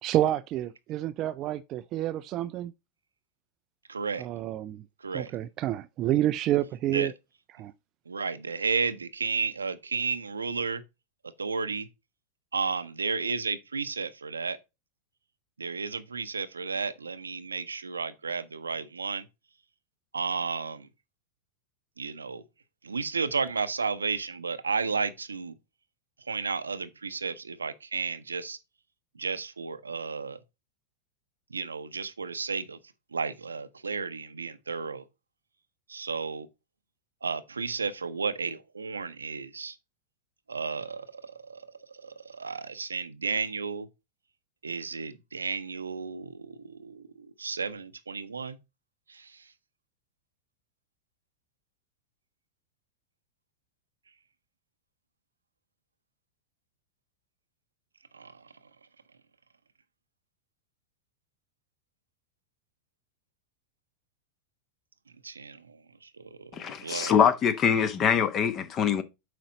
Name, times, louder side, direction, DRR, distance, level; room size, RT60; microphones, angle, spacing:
voice 1, 0.0-2.7 4.2-4.8 5.1-7.1 7.6-7.7, right 13 dB, 35° right, 0.3 m, -28 dB
voice 2, 3.9-4.3 5.0-5.3 6.9-7.1 8.1-10.8 11.4-11.9 12.5-14.6 15.6-19.3 20.1-20.9 22.0-22.4 22.8-25.5 26.3-28.6 29.2-30.4 31.5-32.8 33.1-35.0 35.9-36.5 37.2-39.8 40.5-43.9 44.6-48.6 49.1-49.4 58.1-58.5 65.2-66.5 66.8-67.1, right 5 dB, 75° right, 0.6 m, -33 dB
voice 3, 66.5-69.0, left 7 dB, 30° left, 0.9 m, -24 dB
7.7 x 5.0 x 4.0 m
figure-of-eight pair, 90°, 0 cm